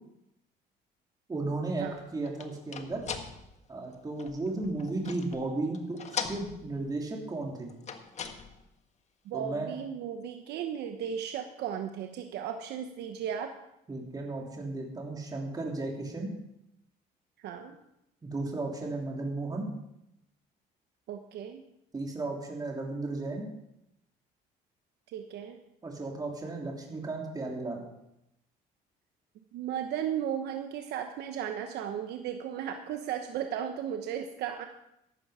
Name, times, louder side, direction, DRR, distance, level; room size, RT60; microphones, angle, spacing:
voice 1, 1.3-3.0 3.7-7.7 9.3-9.8 13.9-16.3 18.2-19.7 21.9-23.5 25.8-27.8, right 2 dB, 20° right, 0 dB, 3.1 m, -34 dB
sound 1, 1.8-5.5 5.7-7.0 7.7-8.7, left 6 dB, 40° left, 1.4 m, -40 dB
voice 2, 9.2-13.5 17.4-17.8 21.1-21.6 25.1-25.6 29.5-34.6, right 9 dB, 80° right, 6 dB, 1.1 m, -35 dB
14.0 x 12.5 x 5.0 m, 0.83 s
cardioid pair, 110°, 17 cm